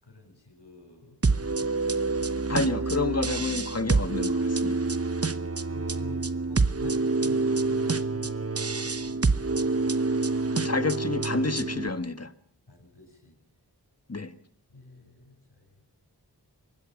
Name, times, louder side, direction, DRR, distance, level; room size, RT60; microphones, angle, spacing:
voice 1, 0.0-1.7 5.7-9.7 12.7-13.4 14.7-15.9, left 2 dB, 80° left, 3 dB, 7.3 m, -49 dB
sound 1, 1.2-11.9, right 3 dB, 35° right, 1.0 m, -27 dB
voice 2, 2.5-4.8 10.5-12.3 14.1-14.3, left 3 dB, 40° left, 10 dB, 1.7 m, -29 dB
24.0 x 21.0 x 5.4 m, 0.63 s
wide cardioid pair, 40°, 40 cm